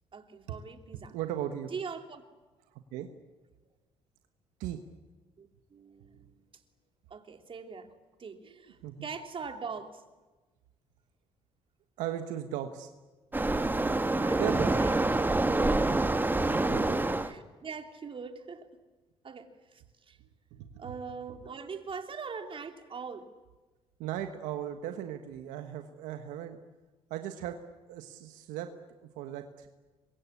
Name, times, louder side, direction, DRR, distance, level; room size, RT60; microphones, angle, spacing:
voice 1, 0.1-1.1 1.7-2.2 5.4-6.4 7.1-7.9 8.2-10.0 14.2-14.9 17.2-18.7 19.2-20.2 20.8-23.3, right 5 dB, 45° right, 6 dB, 2.9 m, -42 dB
voice 2, 0.9-1.7 2.9-3.1 4.6-4.8 8.4-9.1 12.0-12.9 14.4-14.9 16.4-17.0 20.5-20.9 24.0-26.6 27.1-27.6 27.9-28.7 29.2-29.7, right 11 dB, 85° right, 7 dB, 1.4 m, -37 dB
Waves surf, 13.3-17.3, right 2 dB, 15° right, 1.6 m, -26 dB
26.0 x 23.5 x 8.6 m, 1.2 s
supercardioid pair, 65°, 13 cm